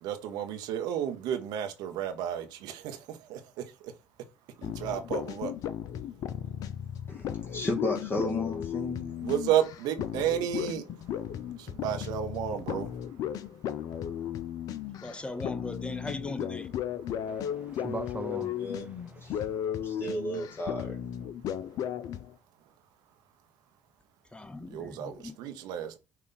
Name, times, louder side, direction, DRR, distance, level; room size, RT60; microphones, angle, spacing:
voice 1, 0.0-3.4 4.6-5.5 9.2-10.8 11.6-12.9 24.7-26.0, right 10 dB, 70° right, 0.7 m, -32 dB
sound 1, 4.6-22.3, left 10 dB, 60° left, 0.4 m, -35 dB
voice 2, 7.1-9.1 18.3-18.9 19.2-19.4 19.8-21.0, left 1 dB, 35° left, 1.1 m, -33 dB
voice 3, 15.0-16.7 24.3-25.3, left 2 dB, 15° left, 0.8 m, -39 dB
voice 4, 17.3-19.5, right 3 dB, 20° right, 0.6 m, -41 dB
5.6 x 2.4 x 3.9 m
hypercardioid pair, 55°, 7 cm